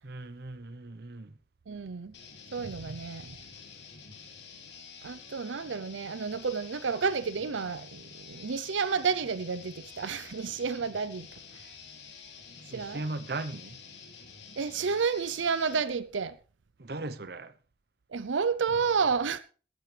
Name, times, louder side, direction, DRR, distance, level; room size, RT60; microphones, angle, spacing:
voice 1, 0.0-1.3 12.7-13.8 16.8-17.5, right 2 dB, 55° right, 0.8 m, -38 dB
voice 2, 1.7-2.1 2.5-3.4 5.0-11.3 12.7-13.0 14.6-16.4 18.1-19.4, right 5 dB, 90° right, 0.6 m, -30 dB
sound 1, 2.1-15.8, left 6 dB, 75° left, 2.9 m, -49 dB
15.0 x 12.5 x 3.3 m
head